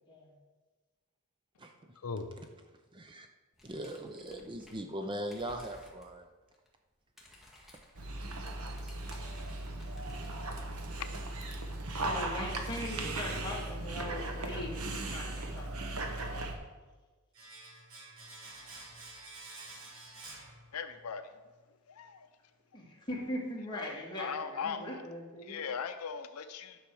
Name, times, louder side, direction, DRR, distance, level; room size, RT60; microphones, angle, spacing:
voice 1, 2.0-2.3 20.7-21.2 22.0-22.3 23.8-23.9 24.2-24.8 25.5-26.8, left 6 dB, 75° left, 9 dB, 0.5 m, -38 dB
voice 2, 2.9-3.3 3.6-6.3, right 1 dB, 20° right, 5 dB, 0.5 m, -40 dB
sound 1, 3.5-5.0 5.2-6.1 6.5-6.7 6.9-10.3, left 1 dB, ahead, 1.7 m, -57 dB
Dog, 8.0-16.5, right 2 dB, 80° right, 1.2 m, -37 dB
voice 3, 12.0-16.0 22.7-25.6, left 1 dB, 20° left, -3 dB, 2.0 m, -40 dB
Domestic sounds home sounds, 17.3-21.2 21.4-21.6, right 2 dB, 65° right, 1.8 m, -50 dB
9.9 x 6.3 x 4.7 m, 1.3 s
head